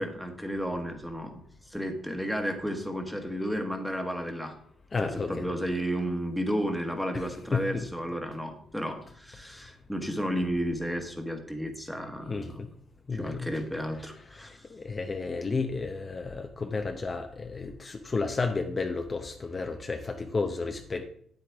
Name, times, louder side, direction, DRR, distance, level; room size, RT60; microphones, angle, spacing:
voice 1, 0.0-4.6 5.0-12.6 13.1-14.7, equal, ahead, 5 dB, 1.4 m, -32 dB
voice 2, 4.9-5.3 7.1-7.2 7.5-7.9 12.3-12.7 13.1-13.5 14.3-21.1, left 4 dB, 30° left, 4 dB, 0.7 m, -32 dB
8.7 x 8.0 x 3.6 m, 0.63 s
cardioid pair, 90°, 0 cm